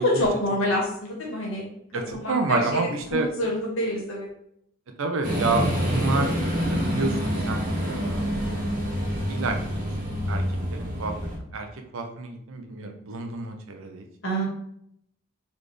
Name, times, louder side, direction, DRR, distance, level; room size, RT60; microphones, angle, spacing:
voice 1, 0.0-1.7 2.1-2.8 3.1-4.3 14.2-14.4, equal, 65° left, -3 dB, 1.8 m, -26 dB
voice 2, 1.9-3.3 5.0-6.3 6.7-8.3 9.3-9.9 10.3-10.4 10.7-11.1 11.5-11.7 11.9-14.0, right 3 dB, 65° right, 5 dB, 0.6 m, -29 dB
sound 1, 5.2-11.4, equal, 35° right, 1.3 m, -27 dB
4.1 x 3.5 x 3.2 m, 0.72 s
head